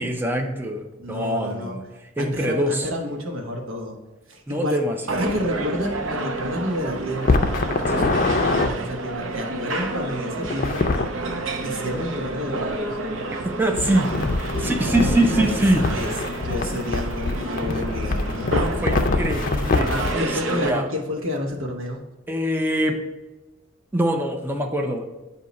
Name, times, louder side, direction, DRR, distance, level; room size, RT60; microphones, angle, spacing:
voice 1, 0.0-1.8 2.2-2.9 4.5-5.3 7.9-8.1 13.4-15.8 18.5-20.9 22.3-23.0 23.9-25.0, right 1 dB, 10° right, 2 dB, 0.5 m, -24 dB
voice 2, 1.0-1.8 2.2-4.0 4.3-4.8 5.1-10.8 11.6-13.0 14.6-15.6 15.9-16.1 16.4-18.9 19.9-22.0, left 1 dB, 90° right, 1 dB, 1.1 m, -30 dB
sound 1, 5.1-20.7, right 2 dB, 70° right, 0.7 m, -30 dB
sound 2, 7.2-8.7 10.4-11.1 13.8-20.1, left 3 dB, 40° left, 0.5 m, -24 dB
8.2 x 2.8 x 5.1 m, 1.1 s
head